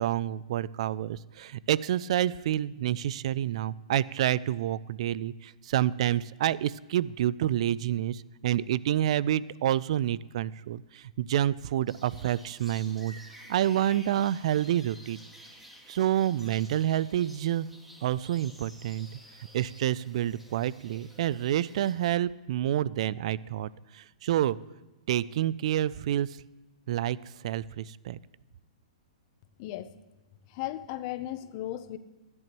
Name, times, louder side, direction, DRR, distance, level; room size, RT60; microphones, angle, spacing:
voice 1, 0.0-13.1 13.5-15.2 15.9-17.7 18.0-19.1 19.5-24.6 25.1-26.4 26.9-27.2 27.4-28.2, right 12 dB, 55° right, 20 dB, 0.3 m, -28 dB
sound 1, 11.9-21.9, equal, 5° right, 1.8 m, -52 dB
voice 2, 29.6-29.9 30.5-32.0, left 14 dB, 40° left, 13 dB, 0.6 m, -36 dB
15.0 x 11.0 x 3.0 m, 1.1 s
hypercardioid pair, 145°, 4 cm